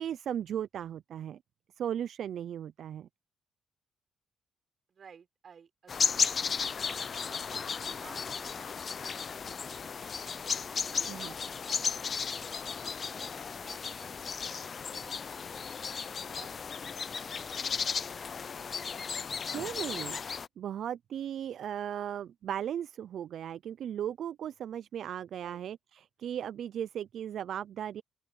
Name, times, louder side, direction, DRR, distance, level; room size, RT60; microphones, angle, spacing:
voice 1, 0.0-1.4 1.8-3.1 11.1-11.3 19.2-20.2 20.6-28.0, right 9 dB, 65° right, 0.4 m, -37 dB
voice 2, 4.9-10.2 10.9-16.1 16.3-18.6 25.4-25.6, right 6 dB, 50° right, 6.0 m, -57 dB
sound 1, 5.9-20.5, left 6 dB, 45° left, 0.5 m, -35 dB
open air
cardioid pair, 90°, 0 cm